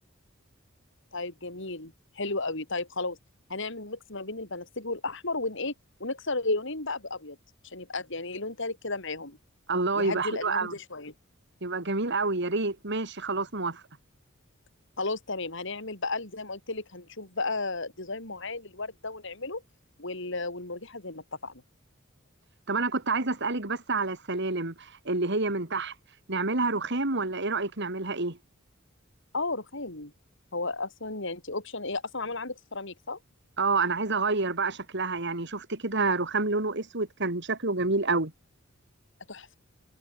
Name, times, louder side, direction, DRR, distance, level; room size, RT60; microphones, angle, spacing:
voice 1, 1.1-3.2 3.5-5.7 6.0-7.4 7.6-9.4 9.9-11.1 15.0-19.6 20.0-21.6 29.3-30.1 30.5-33.2 39.3-39.6, left 3 dB, 65° left, 5.6 m, -34 dB
voice 2, 9.7-10.7 11.6-13.8 22.7-25.9 26.3-28.4 33.6-38.3, right 3 dB, 60° right, 3.3 m, -28 dB
head